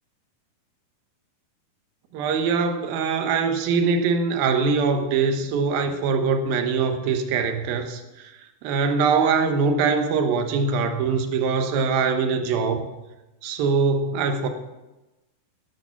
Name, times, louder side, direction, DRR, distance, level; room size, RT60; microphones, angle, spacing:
voice 1, 2.1-8.3 8.6-12.9 13.4-14.5, right 5 dB, 70° right, 6 dB, 2.9 m, -23 dB
13.0 x 11.0 x 5.9 m, 1.1 s
omnidirectional pair, 4.6 m